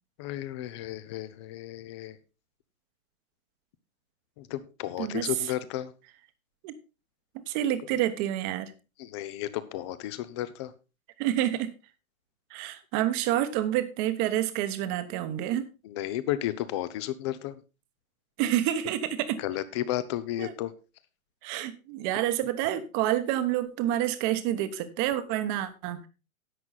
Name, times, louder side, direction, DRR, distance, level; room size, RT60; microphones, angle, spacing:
voice 1, 0.2-2.2 4.4-5.9 9.0-10.7 15.8-17.6 19.4-20.7, left 13 dB, 20° left, 15 dB, 0.6 m, -33 dB
voice 2, 5.0-5.3 6.6-6.7 7.5-8.7 11.2-11.7 12.5-15.7 18.4-19.4 20.4-20.5 21.4-26.1, right 12 dB, 25° right, 11 dB, 1.1 m, -28 dB
11.0 x 8.0 x 4.1 m, 0.30 s
hypercardioid pair, 145°, 42 cm